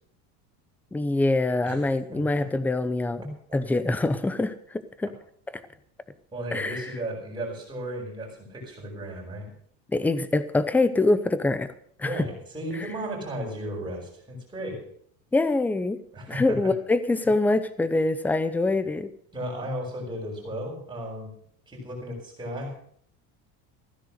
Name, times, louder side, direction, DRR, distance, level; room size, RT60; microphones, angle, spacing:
voice 1, 0.9-4.5 5.0-5.1 5.5-5.6 6.5-6.9 9.9-11.7 12.0-12.3 15.3-16.0 16.3-19.1, left 2 dB, 5° left, 13 dB, 0.6 m, -24 dB
voice 2, 2.1-2.4 6.3-9.5 12.0-14.8 16.1-16.7 19.3-21.3 21.7-22.7, equal, 10° right, -2 dB, 6.4 m, -35 dB
15.5 x 10.5 x 6.6 m, 0.63 s
cardioid pair, 160°, 39 cm